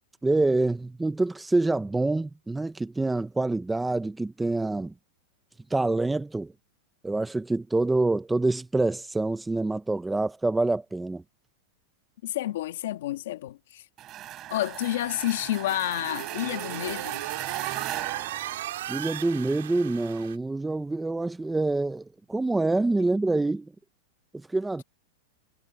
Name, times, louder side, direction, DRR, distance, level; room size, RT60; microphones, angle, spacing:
voice 1, 0.2-4.9 5.7-6.5 7.0-11.2 18.9-23.7 24.5-24.8, right 2 dB, 5° right, 0.5 m, -26 dB
voice 2, 12.2-13.8 14.5-17.2, left 14 dB, 65° left, 1.8 m, -30 dB
sound 1, 14.0-19.2, right 13 dB, 20° right, 7.1 m, -37 dB
sound 2, 15.4-20.4, right 13 dB, 70° right, 3.7 m, -37 dB
supercardioid pair, 180°, 0 cm